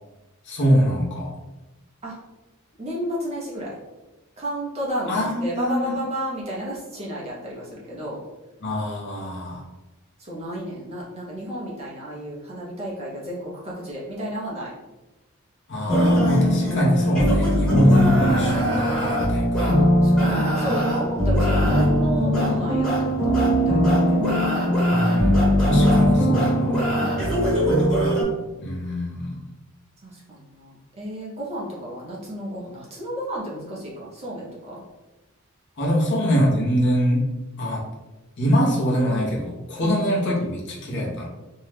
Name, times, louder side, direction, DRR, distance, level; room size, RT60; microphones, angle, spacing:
voice 1, 0.4-1.4 5.1-5.9 8.6-9.6 15.7-19.9 24.9-26.8 28.6-29.4 35.8-37.3 37.6-37.9 38.4-41.3, equal, 55° left, -3 dB, 0.8 m, -24 dB
voice 2, 2.8-3.7 4.4-8.2 10.2-14.7 20.0-24.2 26.9-27.7 30.0-34.8 39.8-40.0, equal, 30° right, -5 dB, 0.6 m, -32 dB
sound 1, 15.9-28.2, equal, 5° left, 1.1 m, -20 dB
2.6 x 2.2 x 3.3 m, 1.1 s
head